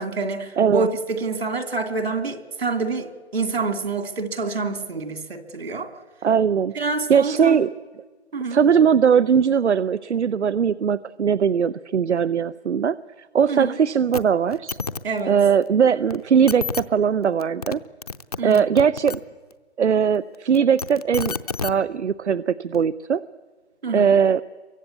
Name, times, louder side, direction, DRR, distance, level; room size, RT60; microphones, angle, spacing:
voice 1, 0.0-5.9 6.8-7.6 8.3-8.6 13.5-13.7 15.0-15.4 18.4-18.7 23.8-24.1, right 4 dB, 60° right, 2.6 m, -27 dB
voice 2, 0.6-0.9 6.2-6.7 7.1-7.7 8.5-14.8 15.3-17.8 18.4-19.2 19.8-21.3 21.6-23.2 23.9-24.4, right 7 dB, 85° right, 0.8 m, -20 dB
sound 1, 14.1-14.2 14.5-15.0 16.1-16.2 16.5-16.8 17.4-17.8 18.0-19.2 20.5-21.7 22.7-22.8, left 5 dB, 35° left, 0.7 m, -29 dB
27.5 x 23.5 x 8.4 m
hypercardioid pair, 170°, 34 cm